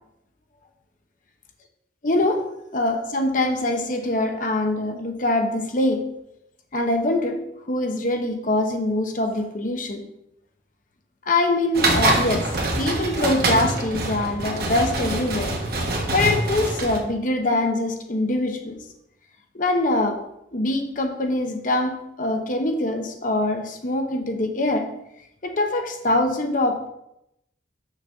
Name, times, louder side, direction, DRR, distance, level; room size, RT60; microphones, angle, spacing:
voice 1, 2.0-2.4 2.7-6.1 6.7-7.4 7.7-10.1 11.3-12.5 12.8-15.5 16.1-18.8 19.5-20.2 20.5-24.9 25.4-26.9, left 2 dB, 45° left, 4 dB, 0.9 m, -23 dB
sound 1, 11.7-17.0, right 2 dB, 55° right, 1.4 m, -24 dB
6.4 x 4.1 x 6.4 m, 0.82 s
head